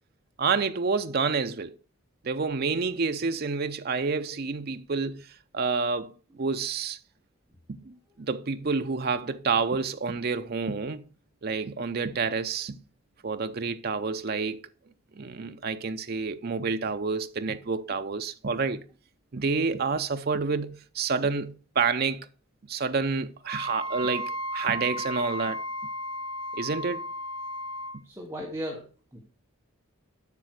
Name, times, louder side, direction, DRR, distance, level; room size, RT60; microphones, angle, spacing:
voice 1, 0.4-1.7 2.2-5.3 5.5-6.1 6.4-7.0 7.7-11.0 11.4-12.8 13.2-14.6 15.2-18.8 19.3-22.3 22.7-25.6 26.5-27.0, right 4 dB, 45° right, 0.5 m, -28 dB
Wind instrument woodwind instrument, 23.5-28.0, equal, 80° left, 1.1 m, -34 dB
voice 2, 28.0-29.2, equal, 10° right, 1.2 m, -36 dB
8.3 x 5.9 x 6.3 m
head